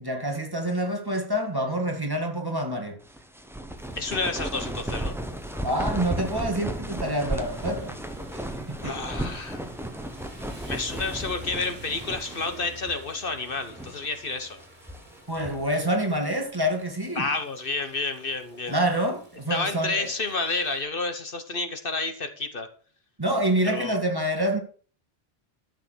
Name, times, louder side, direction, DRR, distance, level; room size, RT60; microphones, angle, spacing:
voice 1, 0.0-3.0 5.6-8.0 8.3-9.0 15.3-17.3 18.7-20.1 23.2-24.6, right 1 dB, 20° right, 2.1 m, -27 dB
sound 1, 3.1-12.6 12.8-13.0 13.6-14.1 14.6-15.7, right 1 dB, ahead, 1.3 m, -34 dB
Rain, 3.8-20.8, equal, 45° right, 3.4 m, -49 dB
voice 2, 4.0-5.2 8.8-9.6 10.7-14.6 17.2-18.8 19.5-22.7 23.6-24.0, left 3 dB, 55° left, 1.4 m, -30 dB
12.5 x 6.9 x 6.3 m
omnidirectional pair, 1.1 m